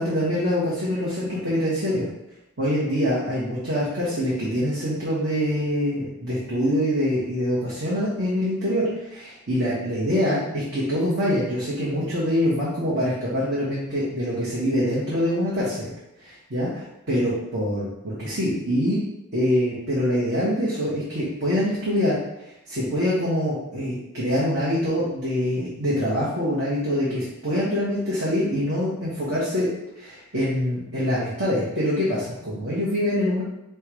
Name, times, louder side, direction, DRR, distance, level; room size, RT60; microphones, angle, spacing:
voice 1, 0.0-2.1 2.6-15.9 16.2-19.0 19.3-22.2 22.7-29.7 29.9-33.4, equal, 55° right, -8 dB, 1.1 m, -24 dB
4.5 x 2.3 x 4.7 m, 0.85 s
head